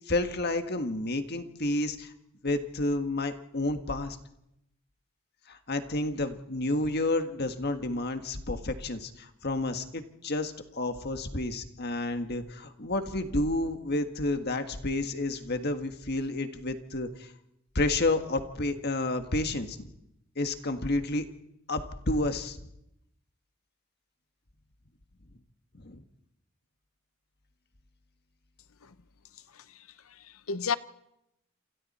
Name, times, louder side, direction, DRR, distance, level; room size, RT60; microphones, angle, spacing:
voice 1, 0.1-2.1 2.4-4.2 5.5-17.3 17.7-19.9 20.3-21.2 21.7-22.6 25.7-26.0, left 2 dB, 50° left, 1.6 m, -30 dB
voice 2, 29.5-30.8, left 5 dB, 80° left, 0.8 m, -34 dB
28.0 x 26.5 x 4.3 m
head